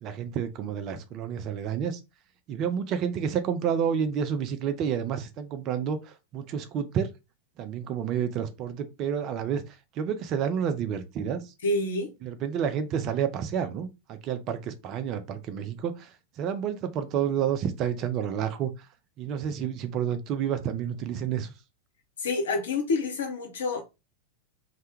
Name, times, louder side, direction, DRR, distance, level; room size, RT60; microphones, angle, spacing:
voice 1, 0.0-2.0 2.5-7.1 7.6-11.4 12.2-16.1 16.4-18.7 19.2-21.5, right 8 dB, 35° right, 0.4 m, -30 dB
voice 2, 11.6-12.1 22.2-23.8, left 3 dB, 65° left, 0.8 m, -27 dB
2.2 x 2.1 x 2.9 m
figure-of-eight pair, 90°, 0 cm